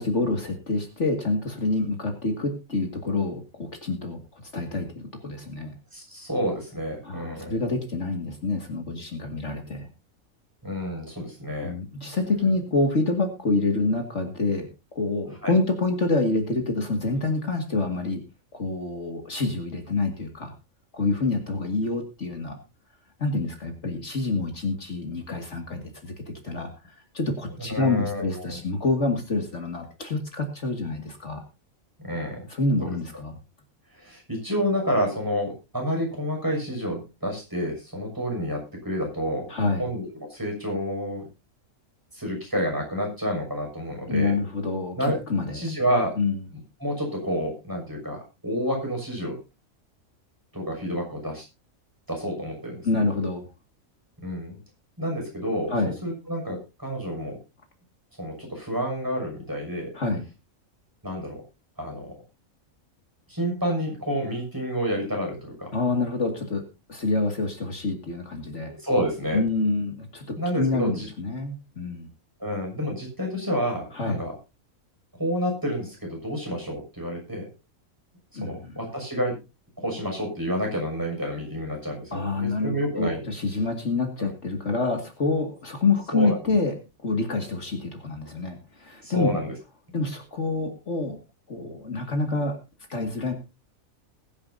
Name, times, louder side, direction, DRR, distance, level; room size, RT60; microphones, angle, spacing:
voice 1, 0.0-5.7 7.0-9.9 11.6-14.7 15.0-18.2 18.5-20.5 20.9-22.5 23.2-31.4 32.5-33.4 39.5-39.9 44.1-45.6 46.2-46.4 52.8-53.4 55.7-55.9 59.9-60.2 65.7-66.6 66.9-68.8 69.3-72.1 73.9-74.2 78.3-78.7 82.1-86.8 87.0-89.3 89.9-91.2 91.5-92.6 92.9-93.3, left 3 dB, 55° left, 4 dB, 2.4 m, -27 dB
voice 2, 5.9-7.6 10.6-11.8 15.4-15.5 27.7-28.6 32.0-32.5 32.8-32.9 33.9-39.5 39.8-41.3 42.1-44.3 45.0-45.2 45.5-46.1 46.8-49.4 50.5-51.4 52.1-53.0 54.2-54.6 55.0-55.7 56.0-57.4 58.2-59.9 61.0-61.4 61.8-62.1 63.3-65.7 68.8-69.4 70.4-71.1 72.4-74.4 75.2-77.4 78.4-79.4 79.8-83.2 84.2-84.3 86.1-86.6 89.0-89.5, equal, 15° right, 0 dB, 6.4 m, -29 dB
21.0 x 10.0 x 2.7 m, 0.28 s
omnidirectional pair, 1.4 m